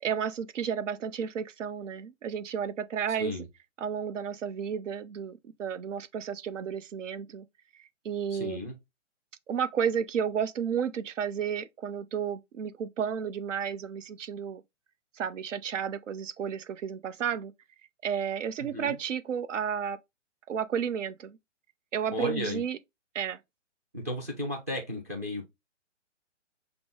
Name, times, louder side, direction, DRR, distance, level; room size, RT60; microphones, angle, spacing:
voice 1, 0.0-3.3 3.8-7.5 7.7-8.6 9.5-14.6 15.1-17.5 18.0-20.0 20.5-21.4 21.9-22.8 23.1-23.4, right 7 dB, 75° right, 0.7 m, -32 dB
voice 2, 3.2-3.5 8.3-8.8 18.6-19.0 22.1-22.6 23.9-25.4, left 1 dB, 15° right, 0.4 m, -34 dB
5.8 x 2.0 x 3.6 m
hypercardioid pair, 145°, 37 cm